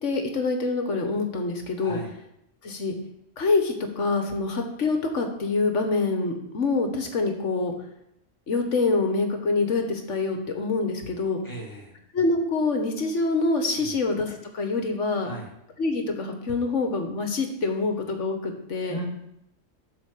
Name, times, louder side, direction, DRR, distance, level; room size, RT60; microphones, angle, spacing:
voice 1, 0.0-2.0 2.6-2.9 3.4-7.7 8.5-11.4 12.1-15.3 15.8-19.0, left 3 dB, 65° left, 5 dB, 1.6 m, -26 dB
voice 2, 1.8-2.1 11.4-12.0 13.7-14.0 15.2-15.5 18.9-19.1, right 1 dB, 15° left, -1 dB, 2.2 m, -37 dB
12.0 x 4.6 x 6.6 m, 0.80 s
omnidirectional pair, 1.4 m